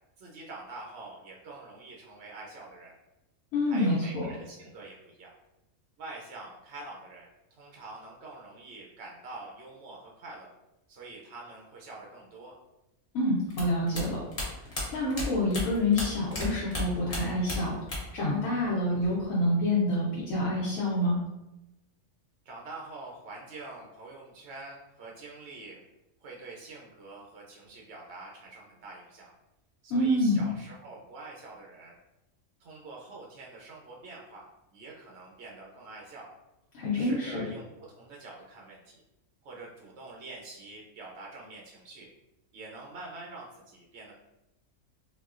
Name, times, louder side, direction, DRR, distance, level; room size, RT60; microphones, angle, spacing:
voice 1, 0.2-2.9 3.7-5.3 6.0-10.5 10.9-12.6 22.4-25.8 26.2-29.3 29.8-32.0 32.6-34.5 34.7-36.3 36.9-39.0 39.4-42.1 42.5-44.1, right 3 dB, 65° right, -3 dB, 0.7 m, -45 dB
voice 2, 3.5-4.3 13.1-14.2 14.6-17.8 18.1-21.2 29.9-30.5 36.7-37.4, left 1 dB, 70° left, -6 dB, 1.1 m, -27 dB
sound 1, 13.5-16.5 16.7-18.2 18.5-19.3, left 1 dB, 30° left, 0.8 m, -34 dB
3.9 x 2.1 x 2.4 m, 0.96 s
omnidirectional pair, 1.5 m